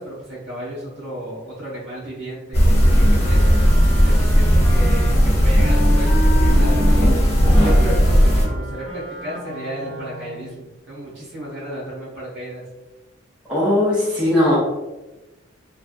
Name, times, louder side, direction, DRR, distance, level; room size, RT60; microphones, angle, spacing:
voice 1, 0.0-3.5 4.0-7.2 7.6-12.6, right 1 dB, 55° right, -6 dB, 1.4 m, -33 dB
sound 1, 2.5-8.5, equal, 30° left, 0.8 m, -15 dB
Wind instrument woodwind instrument, 2.7-10.5, equal, 80° right, 0.7 m, -32 dB
voice 2, 13.5-14.6, left 1 dB, 5° right, -9 dB, 0.6 m, -18 dB
3.4 x 2.1 x 2.5 m, 1.1 s
head